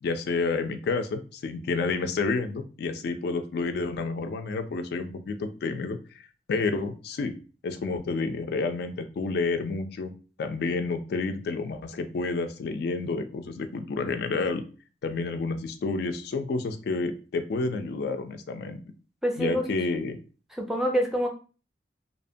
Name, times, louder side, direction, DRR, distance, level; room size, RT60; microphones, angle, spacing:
voice 1, 0.0-7.3 7.6-10.1 10.4-14.6 15.0-18.8 19.4-20.2, left 3 dB, 65° left, 7 dB, 0.3 m, -30 dB
voice 2, 19.2-19.6 20.6-21.3, equal, 5° right, 1 dB, 0.4 m, -26 dB
2.7 x 2.1 x 2.6 m, 0.36 s
head